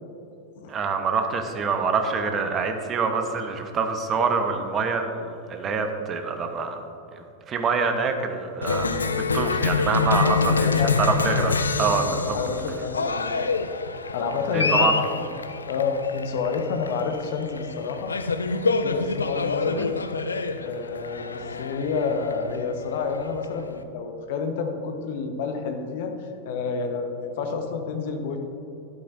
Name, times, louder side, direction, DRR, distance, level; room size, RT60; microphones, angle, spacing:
voice 1, 0.7-6.8 7.1-12.4 14.5-15.0, right 5 dB, 25° right, 5 dB, 1.0 m, -26 dB
Cheering, 8.6-23.8, left 4 dB, 75° left, 0.4 m, -26 dB
voice 2, 10.2-11.1 11.9-13.5 14.1-15.3 15.7-18.1 18.8-19.9 20.6-28.4, left 5 dB, 50° left, 5 dB, 1.1 m, -29 dB
12.0 x 11.0 x 2.6 m, 2.9 s
figure-of-eight pair, 90°, 0 cm